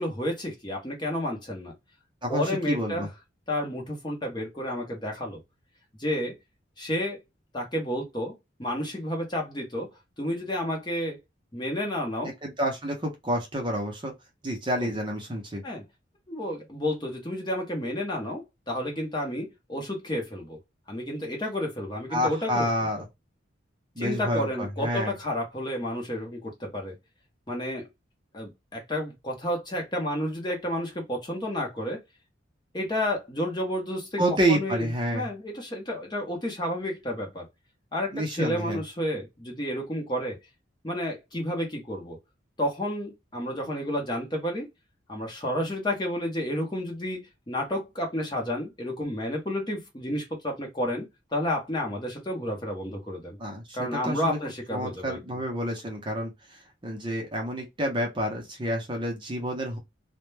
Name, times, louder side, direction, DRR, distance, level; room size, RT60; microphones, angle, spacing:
voice 1, 0.0-1.7 2.3-3.1 3.5-5.4 6.0-6.4 6.8-7.2 7.5-8.3 8.6-9.9 10.2-11.2 11.5-12.3 14.8-14.9 15.6-15.8 16.3-20.6 20.9-22.9 24.0-27.0 27.5-27.9 28.3-32.0 32.7-37.5 37.9-40.4 40.8-42.2 42.6-44.7 45.1-53.4 53.7-55.4, left 1 dB, 20° left, 0.7 m, -31 dB
voice 2, 2.2-3.1 12.4-14.1 14.4-15.6 22.1-23.1 24.0-25.1 34.2-35.3 38.1-38.8 53.4-54.4 54.7-59.8, equal, 25° right, 0.6 m, -29 dB
2.1 x 2.1 x 3.1 m
head